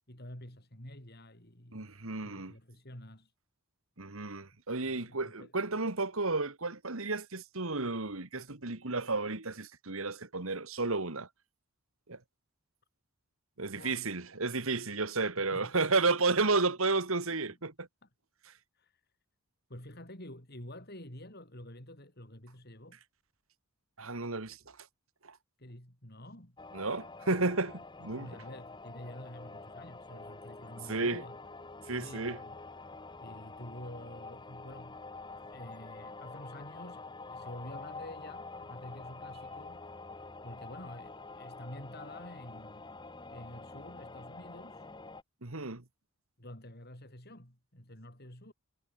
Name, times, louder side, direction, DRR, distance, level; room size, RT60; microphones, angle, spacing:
voice 1, 0.1-1.9 2.2-3.3 4.8-5.5 13.7-14.0 15.4-15.7 17.3-17.4 18.0-18.1 18.7-19.0 19.7-23.0 25.6-26.6 28.1-31.4 31.8-32.6 33.2-35.0 35.5-39.8 40.2-42.9 43.3-44.9 46.4-48.5, left 1 dB, 45° left, 6.2 m, -49 dB
voice 2, 1.7-2.6 4.0-11.3 12.1-12.2 13.6-17.9 24.0-24.8 25.2-25.4 26.7-28.3 30.9-31.2 31.9-32.4 45.4-45.8, right 3 dB, 70° right, 2.1 m, -32 dB
sound 1, 26.6-45.2, left 3 dB, 20° left, 1.2 m, -47 dB
head